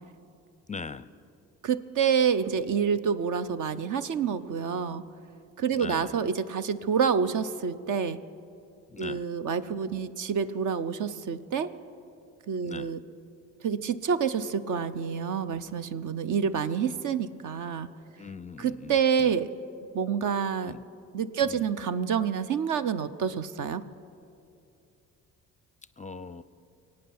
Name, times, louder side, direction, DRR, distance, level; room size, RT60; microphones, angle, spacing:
voice 1, 0.7-1.1 5.8-6.2 8.9-9.2 12.6-12.9 18.2-19.3 20.6-20.8 21.5-21.7 26.0-26.4, left 5 dB, 20° left, 15 dB, 0.5 m, -40 dB
voice 2, 1.6-5.0 5.6-8.2 9.0-11.7 12.5-13.0 13.6-17.9 18.6-19.5 19.9-20.7 21.1-23.8, right 7 dB, 55° right, 13 dB, 0.8 m, -28 dB
23.5 x 8.8 x 6.0 m, 2.6 s
hypercardioid pair, 55°, 38 cm